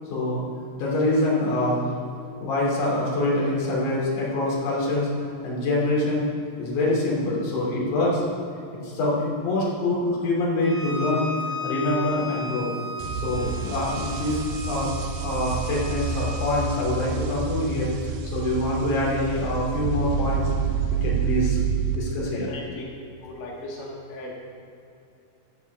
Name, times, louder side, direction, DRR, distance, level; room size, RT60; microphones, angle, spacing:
voice 1, 0.1-0.4 0.8-1.8 2.4-5.1 5.4-6.2 6.6-8.2 8.8-11.3 11.6-12.7 13.2-14.9 15.2-20.5 21.0-21.6 21.9-22.5, left 1 dB, 50° left, -5 dB, 4.2 m, -25 dB
Bowed string instrument, 10.6-16.6, left 3 dB, 30° left, 1.4 m, -35 dB
sound 1, 13.0-22.0, right 6 dB, 80° right, 3.0 m, -28 dB
voice 2, 22.5-22.8 23.2-24.4, left 2 dB, 85° left, -3 dB, 4.1 m, -37 dB
14.0 x 11.5 x 3.6 m, 2.6 s
omnidirectional pair, 5.0 m